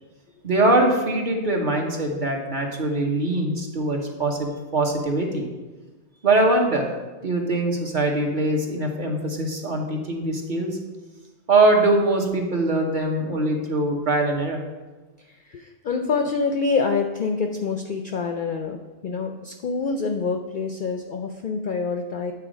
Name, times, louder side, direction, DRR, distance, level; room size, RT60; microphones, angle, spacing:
voice 1, 0.4-5.5 6.2-7.0 7.2-10.8 11.5-14.6, right 2 dB, 45° right, 1 dB, 1.0 m, -22 dB
voice 2, 15.2-22.3, left 4 dB, 60° left, 5 dB, 0.5 m, -26 dB
8.5 x 4.1 x 5.0 m, 1.2 s
omnidirectional pair, 1.3 m